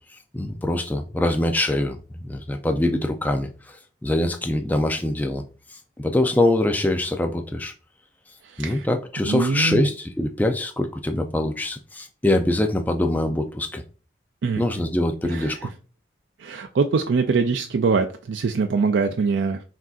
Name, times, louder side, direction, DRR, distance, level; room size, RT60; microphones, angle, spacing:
voice 1, 0.1-3.8 4.0-5.4 6.0-7.7 8.6-13.8 14.6-15.7, left 1 dB, 10° left, 0.3 m, -24 dB
voice 2, 8.5-8.9 9.2-9.9 14.4-14.6 15.3-15.7 16.4-19.6, right 4 dB, 75° right, 0.4 m, -23 dB
5.9 x 2.7 x 2.4 m
head